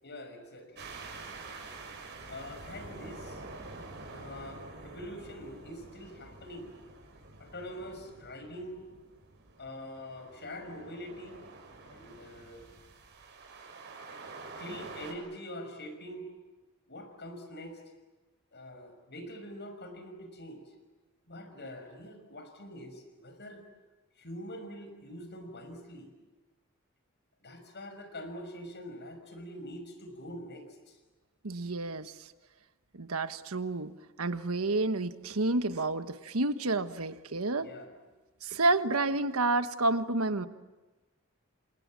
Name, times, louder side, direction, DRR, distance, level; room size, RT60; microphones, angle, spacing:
voice 1, 0.0-0.9 2.3-3.4 4.1-6.7 7.4-8.8 9.6-11.4 11.9-12.7 14.6-16.3 16.9-17.8 18.5-20.6 21.3-23.6 24.2-26.1 27.4-31.0 37.6-37.9, equal, 55° left, 7 dB, 5.8 m, -44 dB
sound 1, 0.8-15.1, right 3 dB, 55° right, 6.3 m, -47 dB
voice 2, 31.4-32.3 32.9-33.9 34.2-37.7 38.4-40.5, right 2 dB, 90° right, 10 dB, 1.4 m, -30 dB
29.0 x 27.0 x 7.6 m, 1.2 s
head